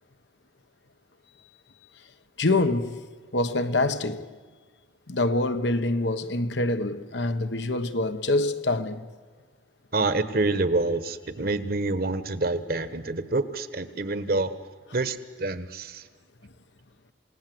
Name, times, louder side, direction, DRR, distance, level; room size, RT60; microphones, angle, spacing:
voice 1, 2.4-3.1 3.3-4.3 5.1-9.1, left 2 dB, 80° left, 1.2 m, -25 dB
voice 2, 9.9-14.6 14.9-16.0, right 2 dB, 55° right, 1.3 m, -27 dB
28.0 x 18.0 x 7.9 m
head